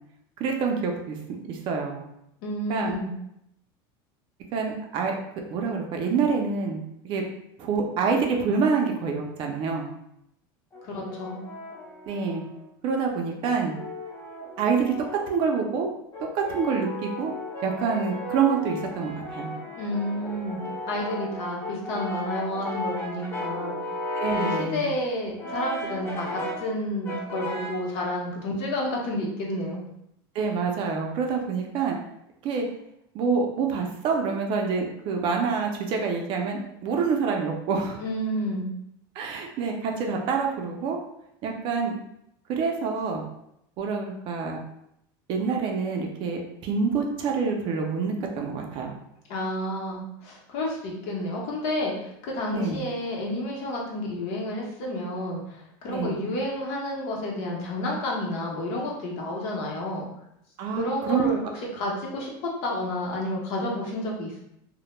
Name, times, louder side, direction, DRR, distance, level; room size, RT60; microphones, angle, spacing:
voice 1, 0.4-1.2 1.4-2.0 2.7-2.9 4.5-5.2 5.5-7.2 7.6-9.9 12.1-12.4 12.8-13.7 14.6-14.9 15.3-15.9 16.3-17.3 17.6-19.6 24.2-24.8 30.3-32.0 32.4-32.7 33.1-38.0 39.2-41.0 41.4-41.9 42.5-43.2 43.8-44.6 45.3-49.0 52.5-52.8 55.9-56.2 60.6-61.3, right 5 dB, 45° right, 2 dB, 0.4 m, -27 dB
voice 2, 2.4-3.1 10.8-11.4 19.7-20.6 20.9-23.8 24.3-29.8 38.0-38.7 49.3-60.1 60.8-64.4, left 1 dB, 60° left, -2 dB, 0.7 m, -30 dB
Brass instrument, 10.7-12.7 13.4-15.5 16.1-24.8 25.4-26.7 27.0-27.9, left 1 dB, 20° left, 0.5 m, -35 dB
2.1 x 2.1 x 3.0 m, 0.78 s
supercardioid pair, 145°, 12 cm